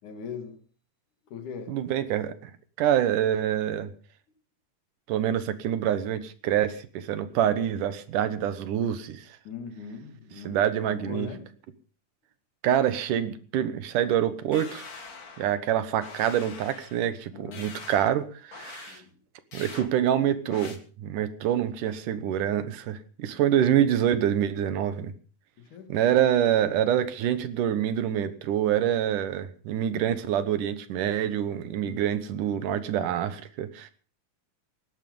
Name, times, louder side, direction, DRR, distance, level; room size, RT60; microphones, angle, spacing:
voice 1, 0.0-0.6 1.3-1.8 9.5-11.6 17.3-17.8 18.9-19.2 25.6-26.1 26.6-26.7 31.8-32.0, left 6 dB, 75° left, 3.5 m, -41 dB
voice 2, 1.7-2.5 2.8-3.9 5.1-9.2 10.5-11.3 12.6-14.9 15.4-19.0 19.5-25.1 25.9-33.9, right 10 dB, 80° right, 2.8 m, -26 dB
sound 1, 14.5-15.6 16.0-17.0 17.5-18.2 18.5-19.0 19.5-19.9 20.5-20.8, left 5 dB, 35° left, 1.7 m, -43 dB
18.0 x 12.0 x 5.4 m
omnidirectional pair, 3.6 m